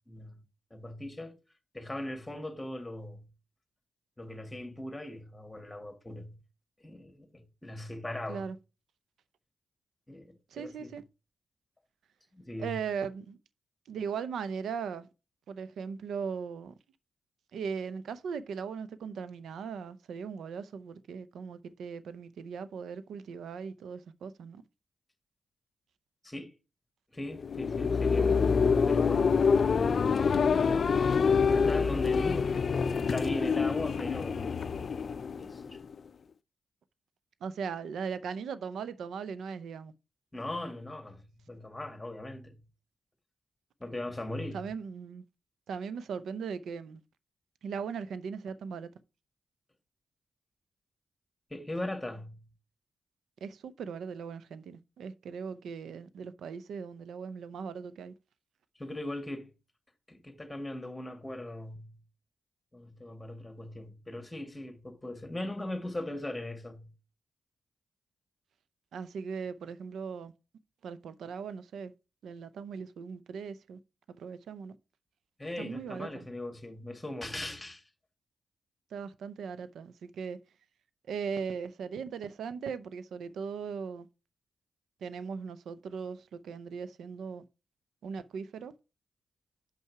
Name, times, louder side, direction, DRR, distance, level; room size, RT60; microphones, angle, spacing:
voice 1, 0.1-0.4 0.7-1.4 1.7-3.2 4.2-6.4 6.8-8.5 10.1-10.9 12.3-12.8 26.2-26.5 27.1-29.9 31.3-34.5 35.4-35.8 40.3-42.6 43.8-44.7 51.5-52.4 58.8-59.5 60.1-62.0 62.7-66.9 75.4-77.8, left 1 dB, 15° left, 2.0 m, -39 dB
voice 2, 10.5-11.0 12.6-13.4 13.9-15.1 15.5-16.7 17.5-24.6 37.4-39.9 44.5-45.2 45.7-47.0 47.6-48.9 53.4-58.1 68.9-70.3 70.8-71.9 72.2-73.8 74.1-74.8 75.6-76.2 78.9-80.4 81.1-84.1 85.0-87.4 88.0-88.7, right 6 dB, 80° right, 0.6 m, -38 dB
sound 1, 27.3-35.9, left 5 dB, 60° left, 0.4 m, -26 dB
6.1 x 5.6 x 4.7 m
cardioid pair, 60°, 0 cm